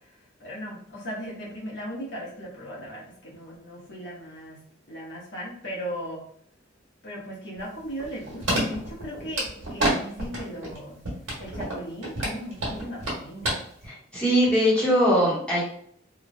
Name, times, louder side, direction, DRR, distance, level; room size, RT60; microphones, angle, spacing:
voice 1, 0.4-4.6 4.9-6.2 7.0-9.5 9.7-11.0 11.4-13.6, equal, 60° left, -5 dB, 0.9 m, -37 dB
sound 1, 7.6-9.9 10.2-10.8 11.0-13.5 13.8-13.9, right 1 dB, 80° right, 1.2 m, -28 dB
voice 2, 14.1-15.6, equal, 5° left, -8 dB, 0.9 m, -20 dB
2.9 x 2.2 x 2.5 m, 0.63 s
head